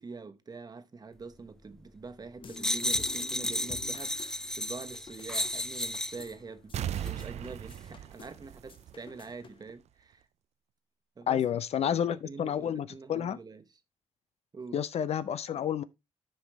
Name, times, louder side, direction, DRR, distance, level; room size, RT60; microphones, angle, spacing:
voice 1, 0.0-10.3 11.2-11.4 11.8-13.6 14.5-14.8, right 4 dB, 35° right, 1.1 m, -45 dB
sound 1, 2.4-9.7, left 5 dB, 45° left, 1.0 m, -50 dB
sound 2, 2.6-6.3 7.0-7.1, left 1 dB, 5° left, 0.3 m, -33 dB
sound 3, 6.7-9.3 9.7-9.8, right 11 dB, 65° right, 0.4 m, -37 dB
voice 2, 11.3-13.4 14.7-15.8, left 9 dB, 60° left, 0.5 m, -30 dB
10.0 x 5.4 x 3.1 m
cardioid pair, 100°, 12 cm